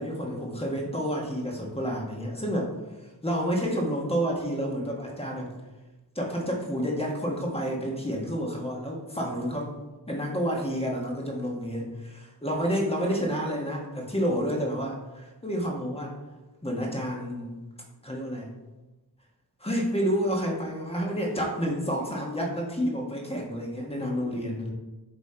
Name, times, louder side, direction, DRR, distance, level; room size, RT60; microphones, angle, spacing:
voice 1, 0.0-2.7 3.0-5.5 6.1-9.7 10.1-16.2 16.6-17.6 18.0-18.5 19.6-24.7, equal, 15° left, -1 dB, 1.2 m, -29 dB
7.5 x 3.1 x 4.3 m, 1.1 s
wide cardioid pair, 90°, 40 cm